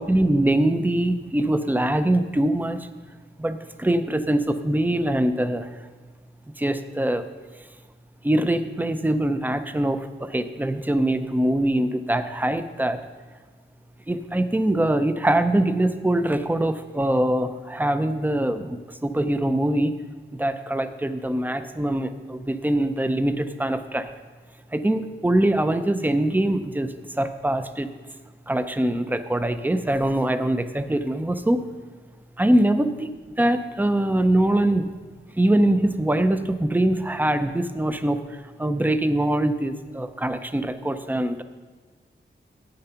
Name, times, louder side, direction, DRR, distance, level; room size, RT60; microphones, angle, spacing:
voice 1, 0.0-2.9 3.4-5.7 6.6-7.3 8.2-13.0 14.1-20.0 20.4-24.1 24.7-27.9 28.5-31.6 32.4-33.1 33.4-34.9 35.4-41.4, right 1 dB, 10° right, 10 dB, 0.6 m, -23 dB
10.5 x 8.8 x 5.7 m, 1.5 s
wide cardioid pair, 130°, 20 cm